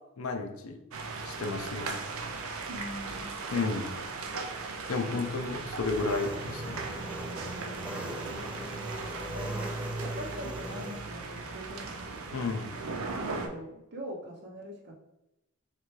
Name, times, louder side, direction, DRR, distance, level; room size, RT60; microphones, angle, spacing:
voice 1, 0.2-0.8 1.2-2.0 3.5-4.0 4.9-6.9 12.3-12.7, left 3 dB, 85° left, 6 dB, 0.5 m, -32 dB
hail storm, 0.9-13.5, right 3 dB, 85° right, 0.5 m, -37 dB
voice 2, 2.7-3.3 5.1-5.3 8.3-8.8 9.1-9.7 10.0-12.4 13.2-14.9, equal, 50° right, -1 dB, 0.8 m, -43 dB
Engine, 5.7-11.0, equal, 5° right, 0.3 m, -42 dB
3.7 x 3.1 x 3.1 m, 0.90 s
head